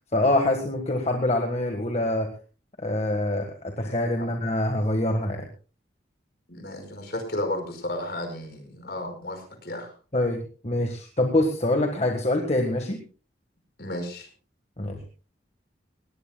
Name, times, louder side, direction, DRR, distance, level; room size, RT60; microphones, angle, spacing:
voice 1, 0.1-2.3 2.8-5.4 10.1-13.0 14.8-15.0, left 1 dB, 35° left, 3 dB, 1.6 m, -25 dB
voice 2, 6.5-9.9 13.8-14.3, left 1 dB, 60° left, 5 dB, 5.2 m, -33 dB
20.5 x 18.0 x 2.3 m, 0.36 s
head